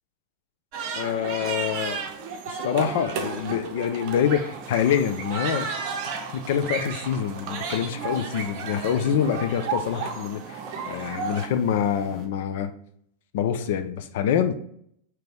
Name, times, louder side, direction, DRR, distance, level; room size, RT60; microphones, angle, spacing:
sound 1, 0.7-11.5, right 5 dB, 45° right, 0.7 m, -33 dB
voice 1, 1.0-2.0 2.6-5.7 6.3-10.6 10.9-12.7 13.3-14.5, left 8 dB, 55° left, 8 dB, 0.5 m, -25 dB
sound 2, 4.3-12.3, right 4 dB, 25° right, 1.1 m, -50 dB
4.8 x 3.0 x 3.6 m, 0.65 s
figure-of-eight pair, 90°, 0 cm